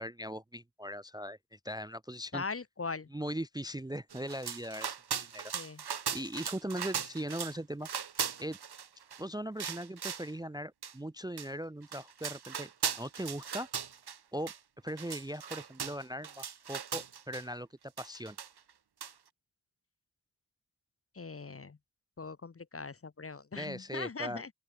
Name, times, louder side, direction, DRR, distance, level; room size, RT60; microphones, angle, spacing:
voice 1, 0.0-2.4 3.1-5.5 6.1-7.9 8.4-8.6 9.2-12.7 13.0-13.7 14.3-14.5 14.8-17.7 18.0-18.4 23.5-24.4, equal, 10° right, 0.5 m, -39 dB
voice 2, 2.3-3.1 5.5-5.8 21.1-21.8 22.2-24.5, left 4 dB, 35° left, 0.7 m, -40 dB
sound 1, 4.1-7.6 7.8-9.2 9.6-10.3 10.8-10.9 11.4-11.5 11.8-14.2 14.5-14.6 14.9-17.4 18.0-18.7 19.0-19.1, right 7 dB, 75° right, 0.8 m, -38 dB
open air
wide cardioid pair, 50°, 39 cm